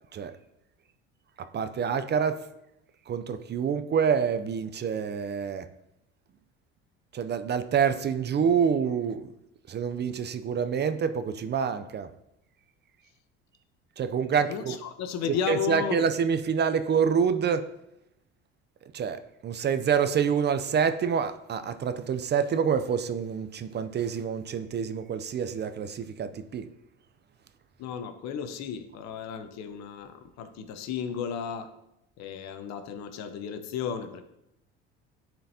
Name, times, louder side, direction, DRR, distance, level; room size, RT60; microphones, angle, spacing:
voice 1, 1.4-2.4 3.1-5.7 7.1-9.3 9.7-12.1 14.0-14.8 15.5-17.7 18.9-26.7, right 7 dB, 35° right, 11 dB, 0.5 m, -27 dB
voice 2, 14.4-16.0 27.8-31.7 32.2-34.2, left 7 dB, 60° left, 9 dB, 0.8 m, -34 dB
10.0 x 4.5 x 2.8 m, 0.83 s
supercardioid pair, 80°, 30 cm